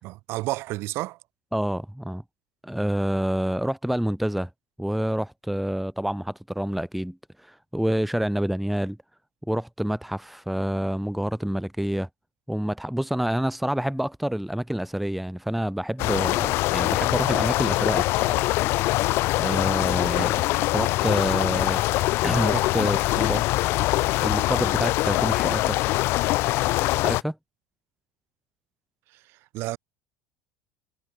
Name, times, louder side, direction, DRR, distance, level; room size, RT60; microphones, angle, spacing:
voice 1, 0.0-1.2 20.1-20.2 29.5-29.8, right 19 dB, 60° right, 4.4 m, -30 dB
voice 2, 1.5-2.2 2.6-4.5 4.8-9.0 9.5-12.1 12.5-18.4 19.4-20.4 20.7-21.8 22.2-23.4 24.2-25.8 27.0-27.4, equal, ahead, 1.0 m, -27 dB
sound 1, 16.0-27.2, left 19 dB, 60° left, 2.8 m, -23 dB
supercardioid pair, 100°, 5 cm